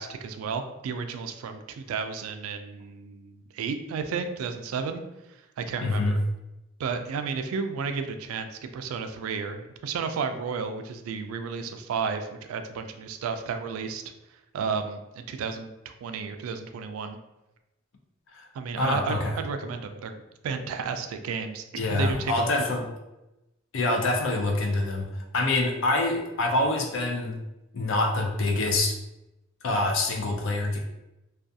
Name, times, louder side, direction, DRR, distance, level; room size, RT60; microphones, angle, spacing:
voice 1, 0.0-5.0 5.6-6.2 6.8-14.0 14.5-17.2 18.5-20.2 20.4-22.6, right 5 dB, 85° right, 11 dB, 0.3 m, -32 dB
voice 2, 5.8-6.2 18.3-18.5 18.8-19.4 21.8-22.8 23.7-27.4 27.7-29.0 29.6-30.8, left 2 dB, 65° left, 2 dB, 0.5 m, -26 dB
2.4 x 2.3 x 2.6 m, 0.96 s
head